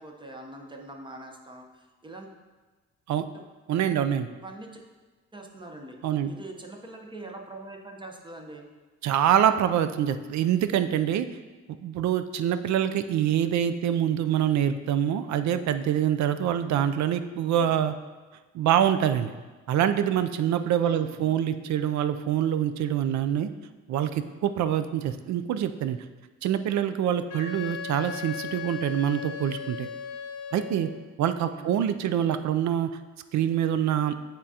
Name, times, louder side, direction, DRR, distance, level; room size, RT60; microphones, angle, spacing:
voice 1, 0.0-2.3 3.3-3.4 4.4-4.8 5.3-6.0 6.3-8.7 17.4-17.8 20.8-21.4 31.4-31.9, right 2 dB, 15° right, 2 dB, 0.8 m, -43 dB
voice 2, 3.7-4.3 6.0-6.3 9.0-11.3 11.7-17.9 18.5-19.3 19.7-23.5 23.9-26.0 26.4-29.9 30.5-30.9 31.2-32.9 33.3-34.1, right 10 dB, 70° right, 11 dB, 0.5 m, -25 dB
Wind instrument woodwind instrument, 27.3-31.0, left 7 dB, 55° left, 0.7 m, -37 dB
9.7 x 3.7 x 2.8 m, 1.3 s
cardioid pair, 90°, 30 cm